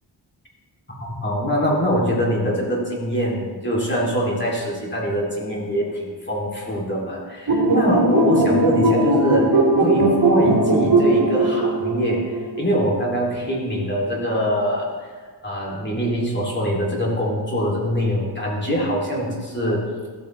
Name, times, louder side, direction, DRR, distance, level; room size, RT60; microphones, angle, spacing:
voice 1, 1.0-15.1 15.4-19.8, equal, 25° left, -4 dB, 2.5 m, -23 dB
sound 1, 7.5-12.8, right 2 dB, 55° right, 2.9 m, -18 dB
13.5 x 8.6 x 3.1 m, 1.5 s
wide cardioid pair, 115°, 43 cm